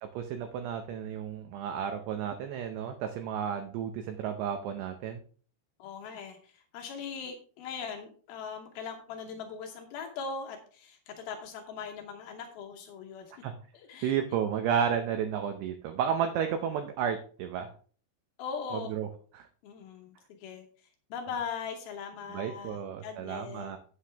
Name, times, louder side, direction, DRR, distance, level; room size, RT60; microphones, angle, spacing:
voice 1, 0.0-5.2 13.4-13.5 14.0-17.7 18.7-19.1 19.3-19.5 22.3-23.8, right 8 dB, 85° right, 7 dB, 2.4 m, -32 dB
voice 2, 5.8-13.3 13.7-14.1 18.4-18.9 19.6-20.7 21.1-23.7, left 6 dB, 90° left, 3 dB, 2.1 m, -40 dB
9.6 x 8.7 x 3.4 m, 0.43 s
omnidirectional pair, 5.8 m